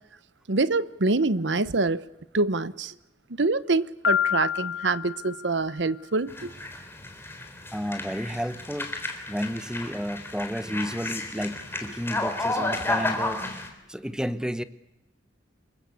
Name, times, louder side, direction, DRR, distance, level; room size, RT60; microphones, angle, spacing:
voice 1, 0.5-2.0 2.3-2.9 3.4-6.5, right 3 dB, 70° right, 1.0 m, -25 dB
Piano, 4.0-5.9, left 9 dB, 65° left, 1.1 m, -28 dB
sound 1, 6.3-13.7, left 2 dB, 15° left, 3.8 m, -32 dB
voice 2, 7.7-8.9 9.3-14.6, equal, 5° right, 1.0 m, -32 dB
27.5 x 23.0 x 8.3 m
head